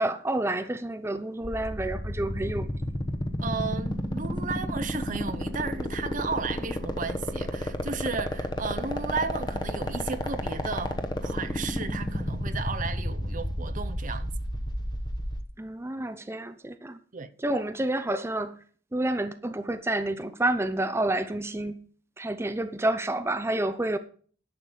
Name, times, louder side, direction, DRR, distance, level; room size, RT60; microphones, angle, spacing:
voice 1, 0.0-2.7 15.6-17.0 17.4-18.6 18.9-21.8 22.2-24.0, right 1 dB, 15° right, 0.6 m, -29 dB
sound 1, 1.4-15.4, left 1 dB, 25° left, 1.1 m, -30 dB
voice 2, 3.4-14.3 17.1-17.3, right 5 dB, 45° right, 0.7 m, -34 dB
11.0 x 6.6 x 5.5 m
head